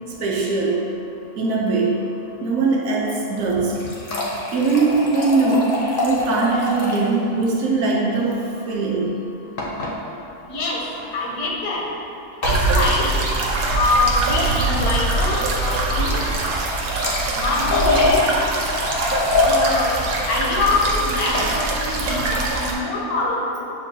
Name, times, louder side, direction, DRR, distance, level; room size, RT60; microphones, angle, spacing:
voice 1, 0.2-0.8 1.4-1.9 2.4-3.8 4.5-5.8 6.0-8.4 8.7-9.2, right 3 dB, 70° right, -3 dB, 0.7 m, -20 dB
sound 1, 3.4-7.1 7.4-7.5 7.8-7.9 9.6-9.9 10.9-11.1 12.4-12.7 16.5-19.6 21.0-21.5, left 3 dB, 60° left, 0.5 m, -24 dB
voice 2, 10.5-10.8 11.1-11.8 12.4-13.1 13.7-16.5 17.4-18.4 19.5-20.0 20.3-23.6, left 2 dB, 75° left, -2 dB, 1.1 m, -24 dB
sound 2, 12.4-22.7, right 2 dB, 90° right, 1.2 m, -23 dB
6.7 x 2.2 x 2.6 m, 2.7 s
omnidirectional pair, 1.7 m